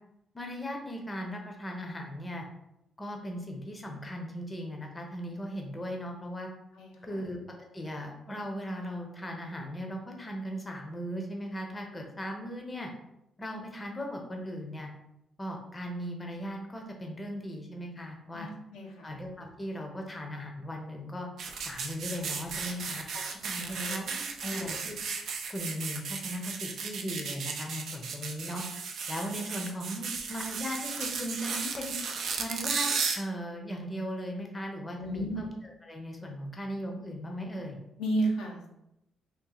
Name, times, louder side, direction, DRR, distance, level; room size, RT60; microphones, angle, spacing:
voice 1, 0.3-2.4 3.0-6.5 7.0-7.4 7.7-12.9 13.4-14.9 15.4-18.5 19.0-21.3 21.6-25.0 25.5-28.6 29.1-32.0 32.4-32.9 33.1-37.8, equal, 20° left, 1 dB, 0.7 m, -38 dB
voice 2, 6.8-7.2 18.3-19.1 23.6-24.0 24.4-24.7 35.0-35.4 38.0-38.7, right 1 dB, 85° left, -1 dB, 0.7 m, -34 dB
sound 1, 21.4-33.2, right 5 dB, 70° right, 0.5 m, -35 dB
3.0 x 2.5 x 3.8 m, 0.85 s
cardioid pair, 90°, 0 cm